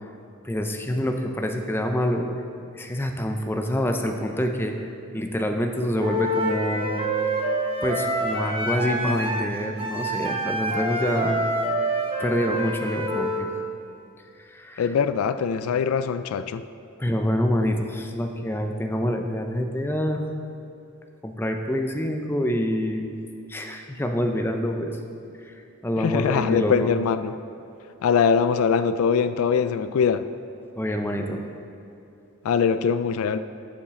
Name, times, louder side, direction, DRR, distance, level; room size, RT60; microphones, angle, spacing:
voice 1, 0.4-2.3 2.7-7.1 7.8-11.4 12.2-13.5 14.4-14.9 17.0-20.2 21.2-23.2 23.5-25.0 25.4-25.5 25.8-26.9 30.8-31.4, equal, 10° left, 4 dB, 0.5 m, -26 dB
Wind instrument woodwind instrument, 6.0-13.5, right 1 dB, 25° right, 0.8 m, -27 dB
voice 2, 14.8-16.6 26.0-27.3 28.0-30.3 32.4-33.4, left 6 dB, 75° left, 13 dB, 0.3 m, -22 dB
7.2 x 7.1 x 6.2 m, 2.7 s
head